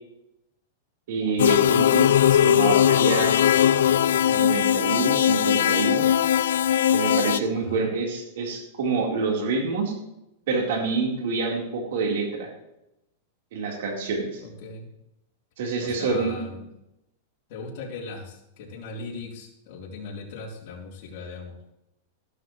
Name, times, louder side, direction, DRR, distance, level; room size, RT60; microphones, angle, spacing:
voice 1, 1.1-3.4 4.3-6.1 6.9-9.9 10.5-12.5 13.5-14.4 15.6-16.4, right 4 dB, 70° right, 0 dB, 3.8 m, -27 dB
sound 1, 1.4-7.4, left 10 dB, 85° left, 0.4 m, -20 dB
voice 2, 7.5-7.9 14.4-14.9 15.8-16.7 17.5-21.6, left 3 dB, 50° left, -1 dB, 3.5 m, -39 dB
13.5 x 12.0 x 3.1 m, 0.87 s
supercardioid pair, 150°, 0 cm